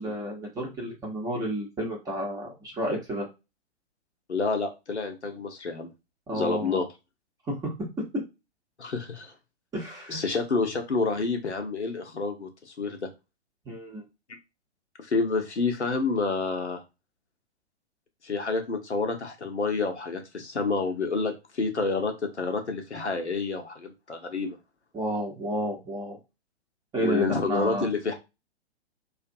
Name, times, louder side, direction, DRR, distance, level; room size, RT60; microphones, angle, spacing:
voice 1, 0.0-3.3 6.3-6.8 7.6-7.7 9.7-10.2 13.7-14.0 24.9-26.2 26.9-27.9, right 1 dB, 10° right, -1 dB, 0.6 m, -31 dB
voice 2, 4.3-5.9 6.3-6.9 8.8-9.3 10.1-12.5 12.8-13.1 15.0-16.8 18.2-24.6 27.0-28.1, left 4 dB, 90° left, 5 dB, 0.8 m, -28 dB
2.5 x 2.4 x 2.5 m, 0.26 s
figure-of-eight pair, 115°, 33 cm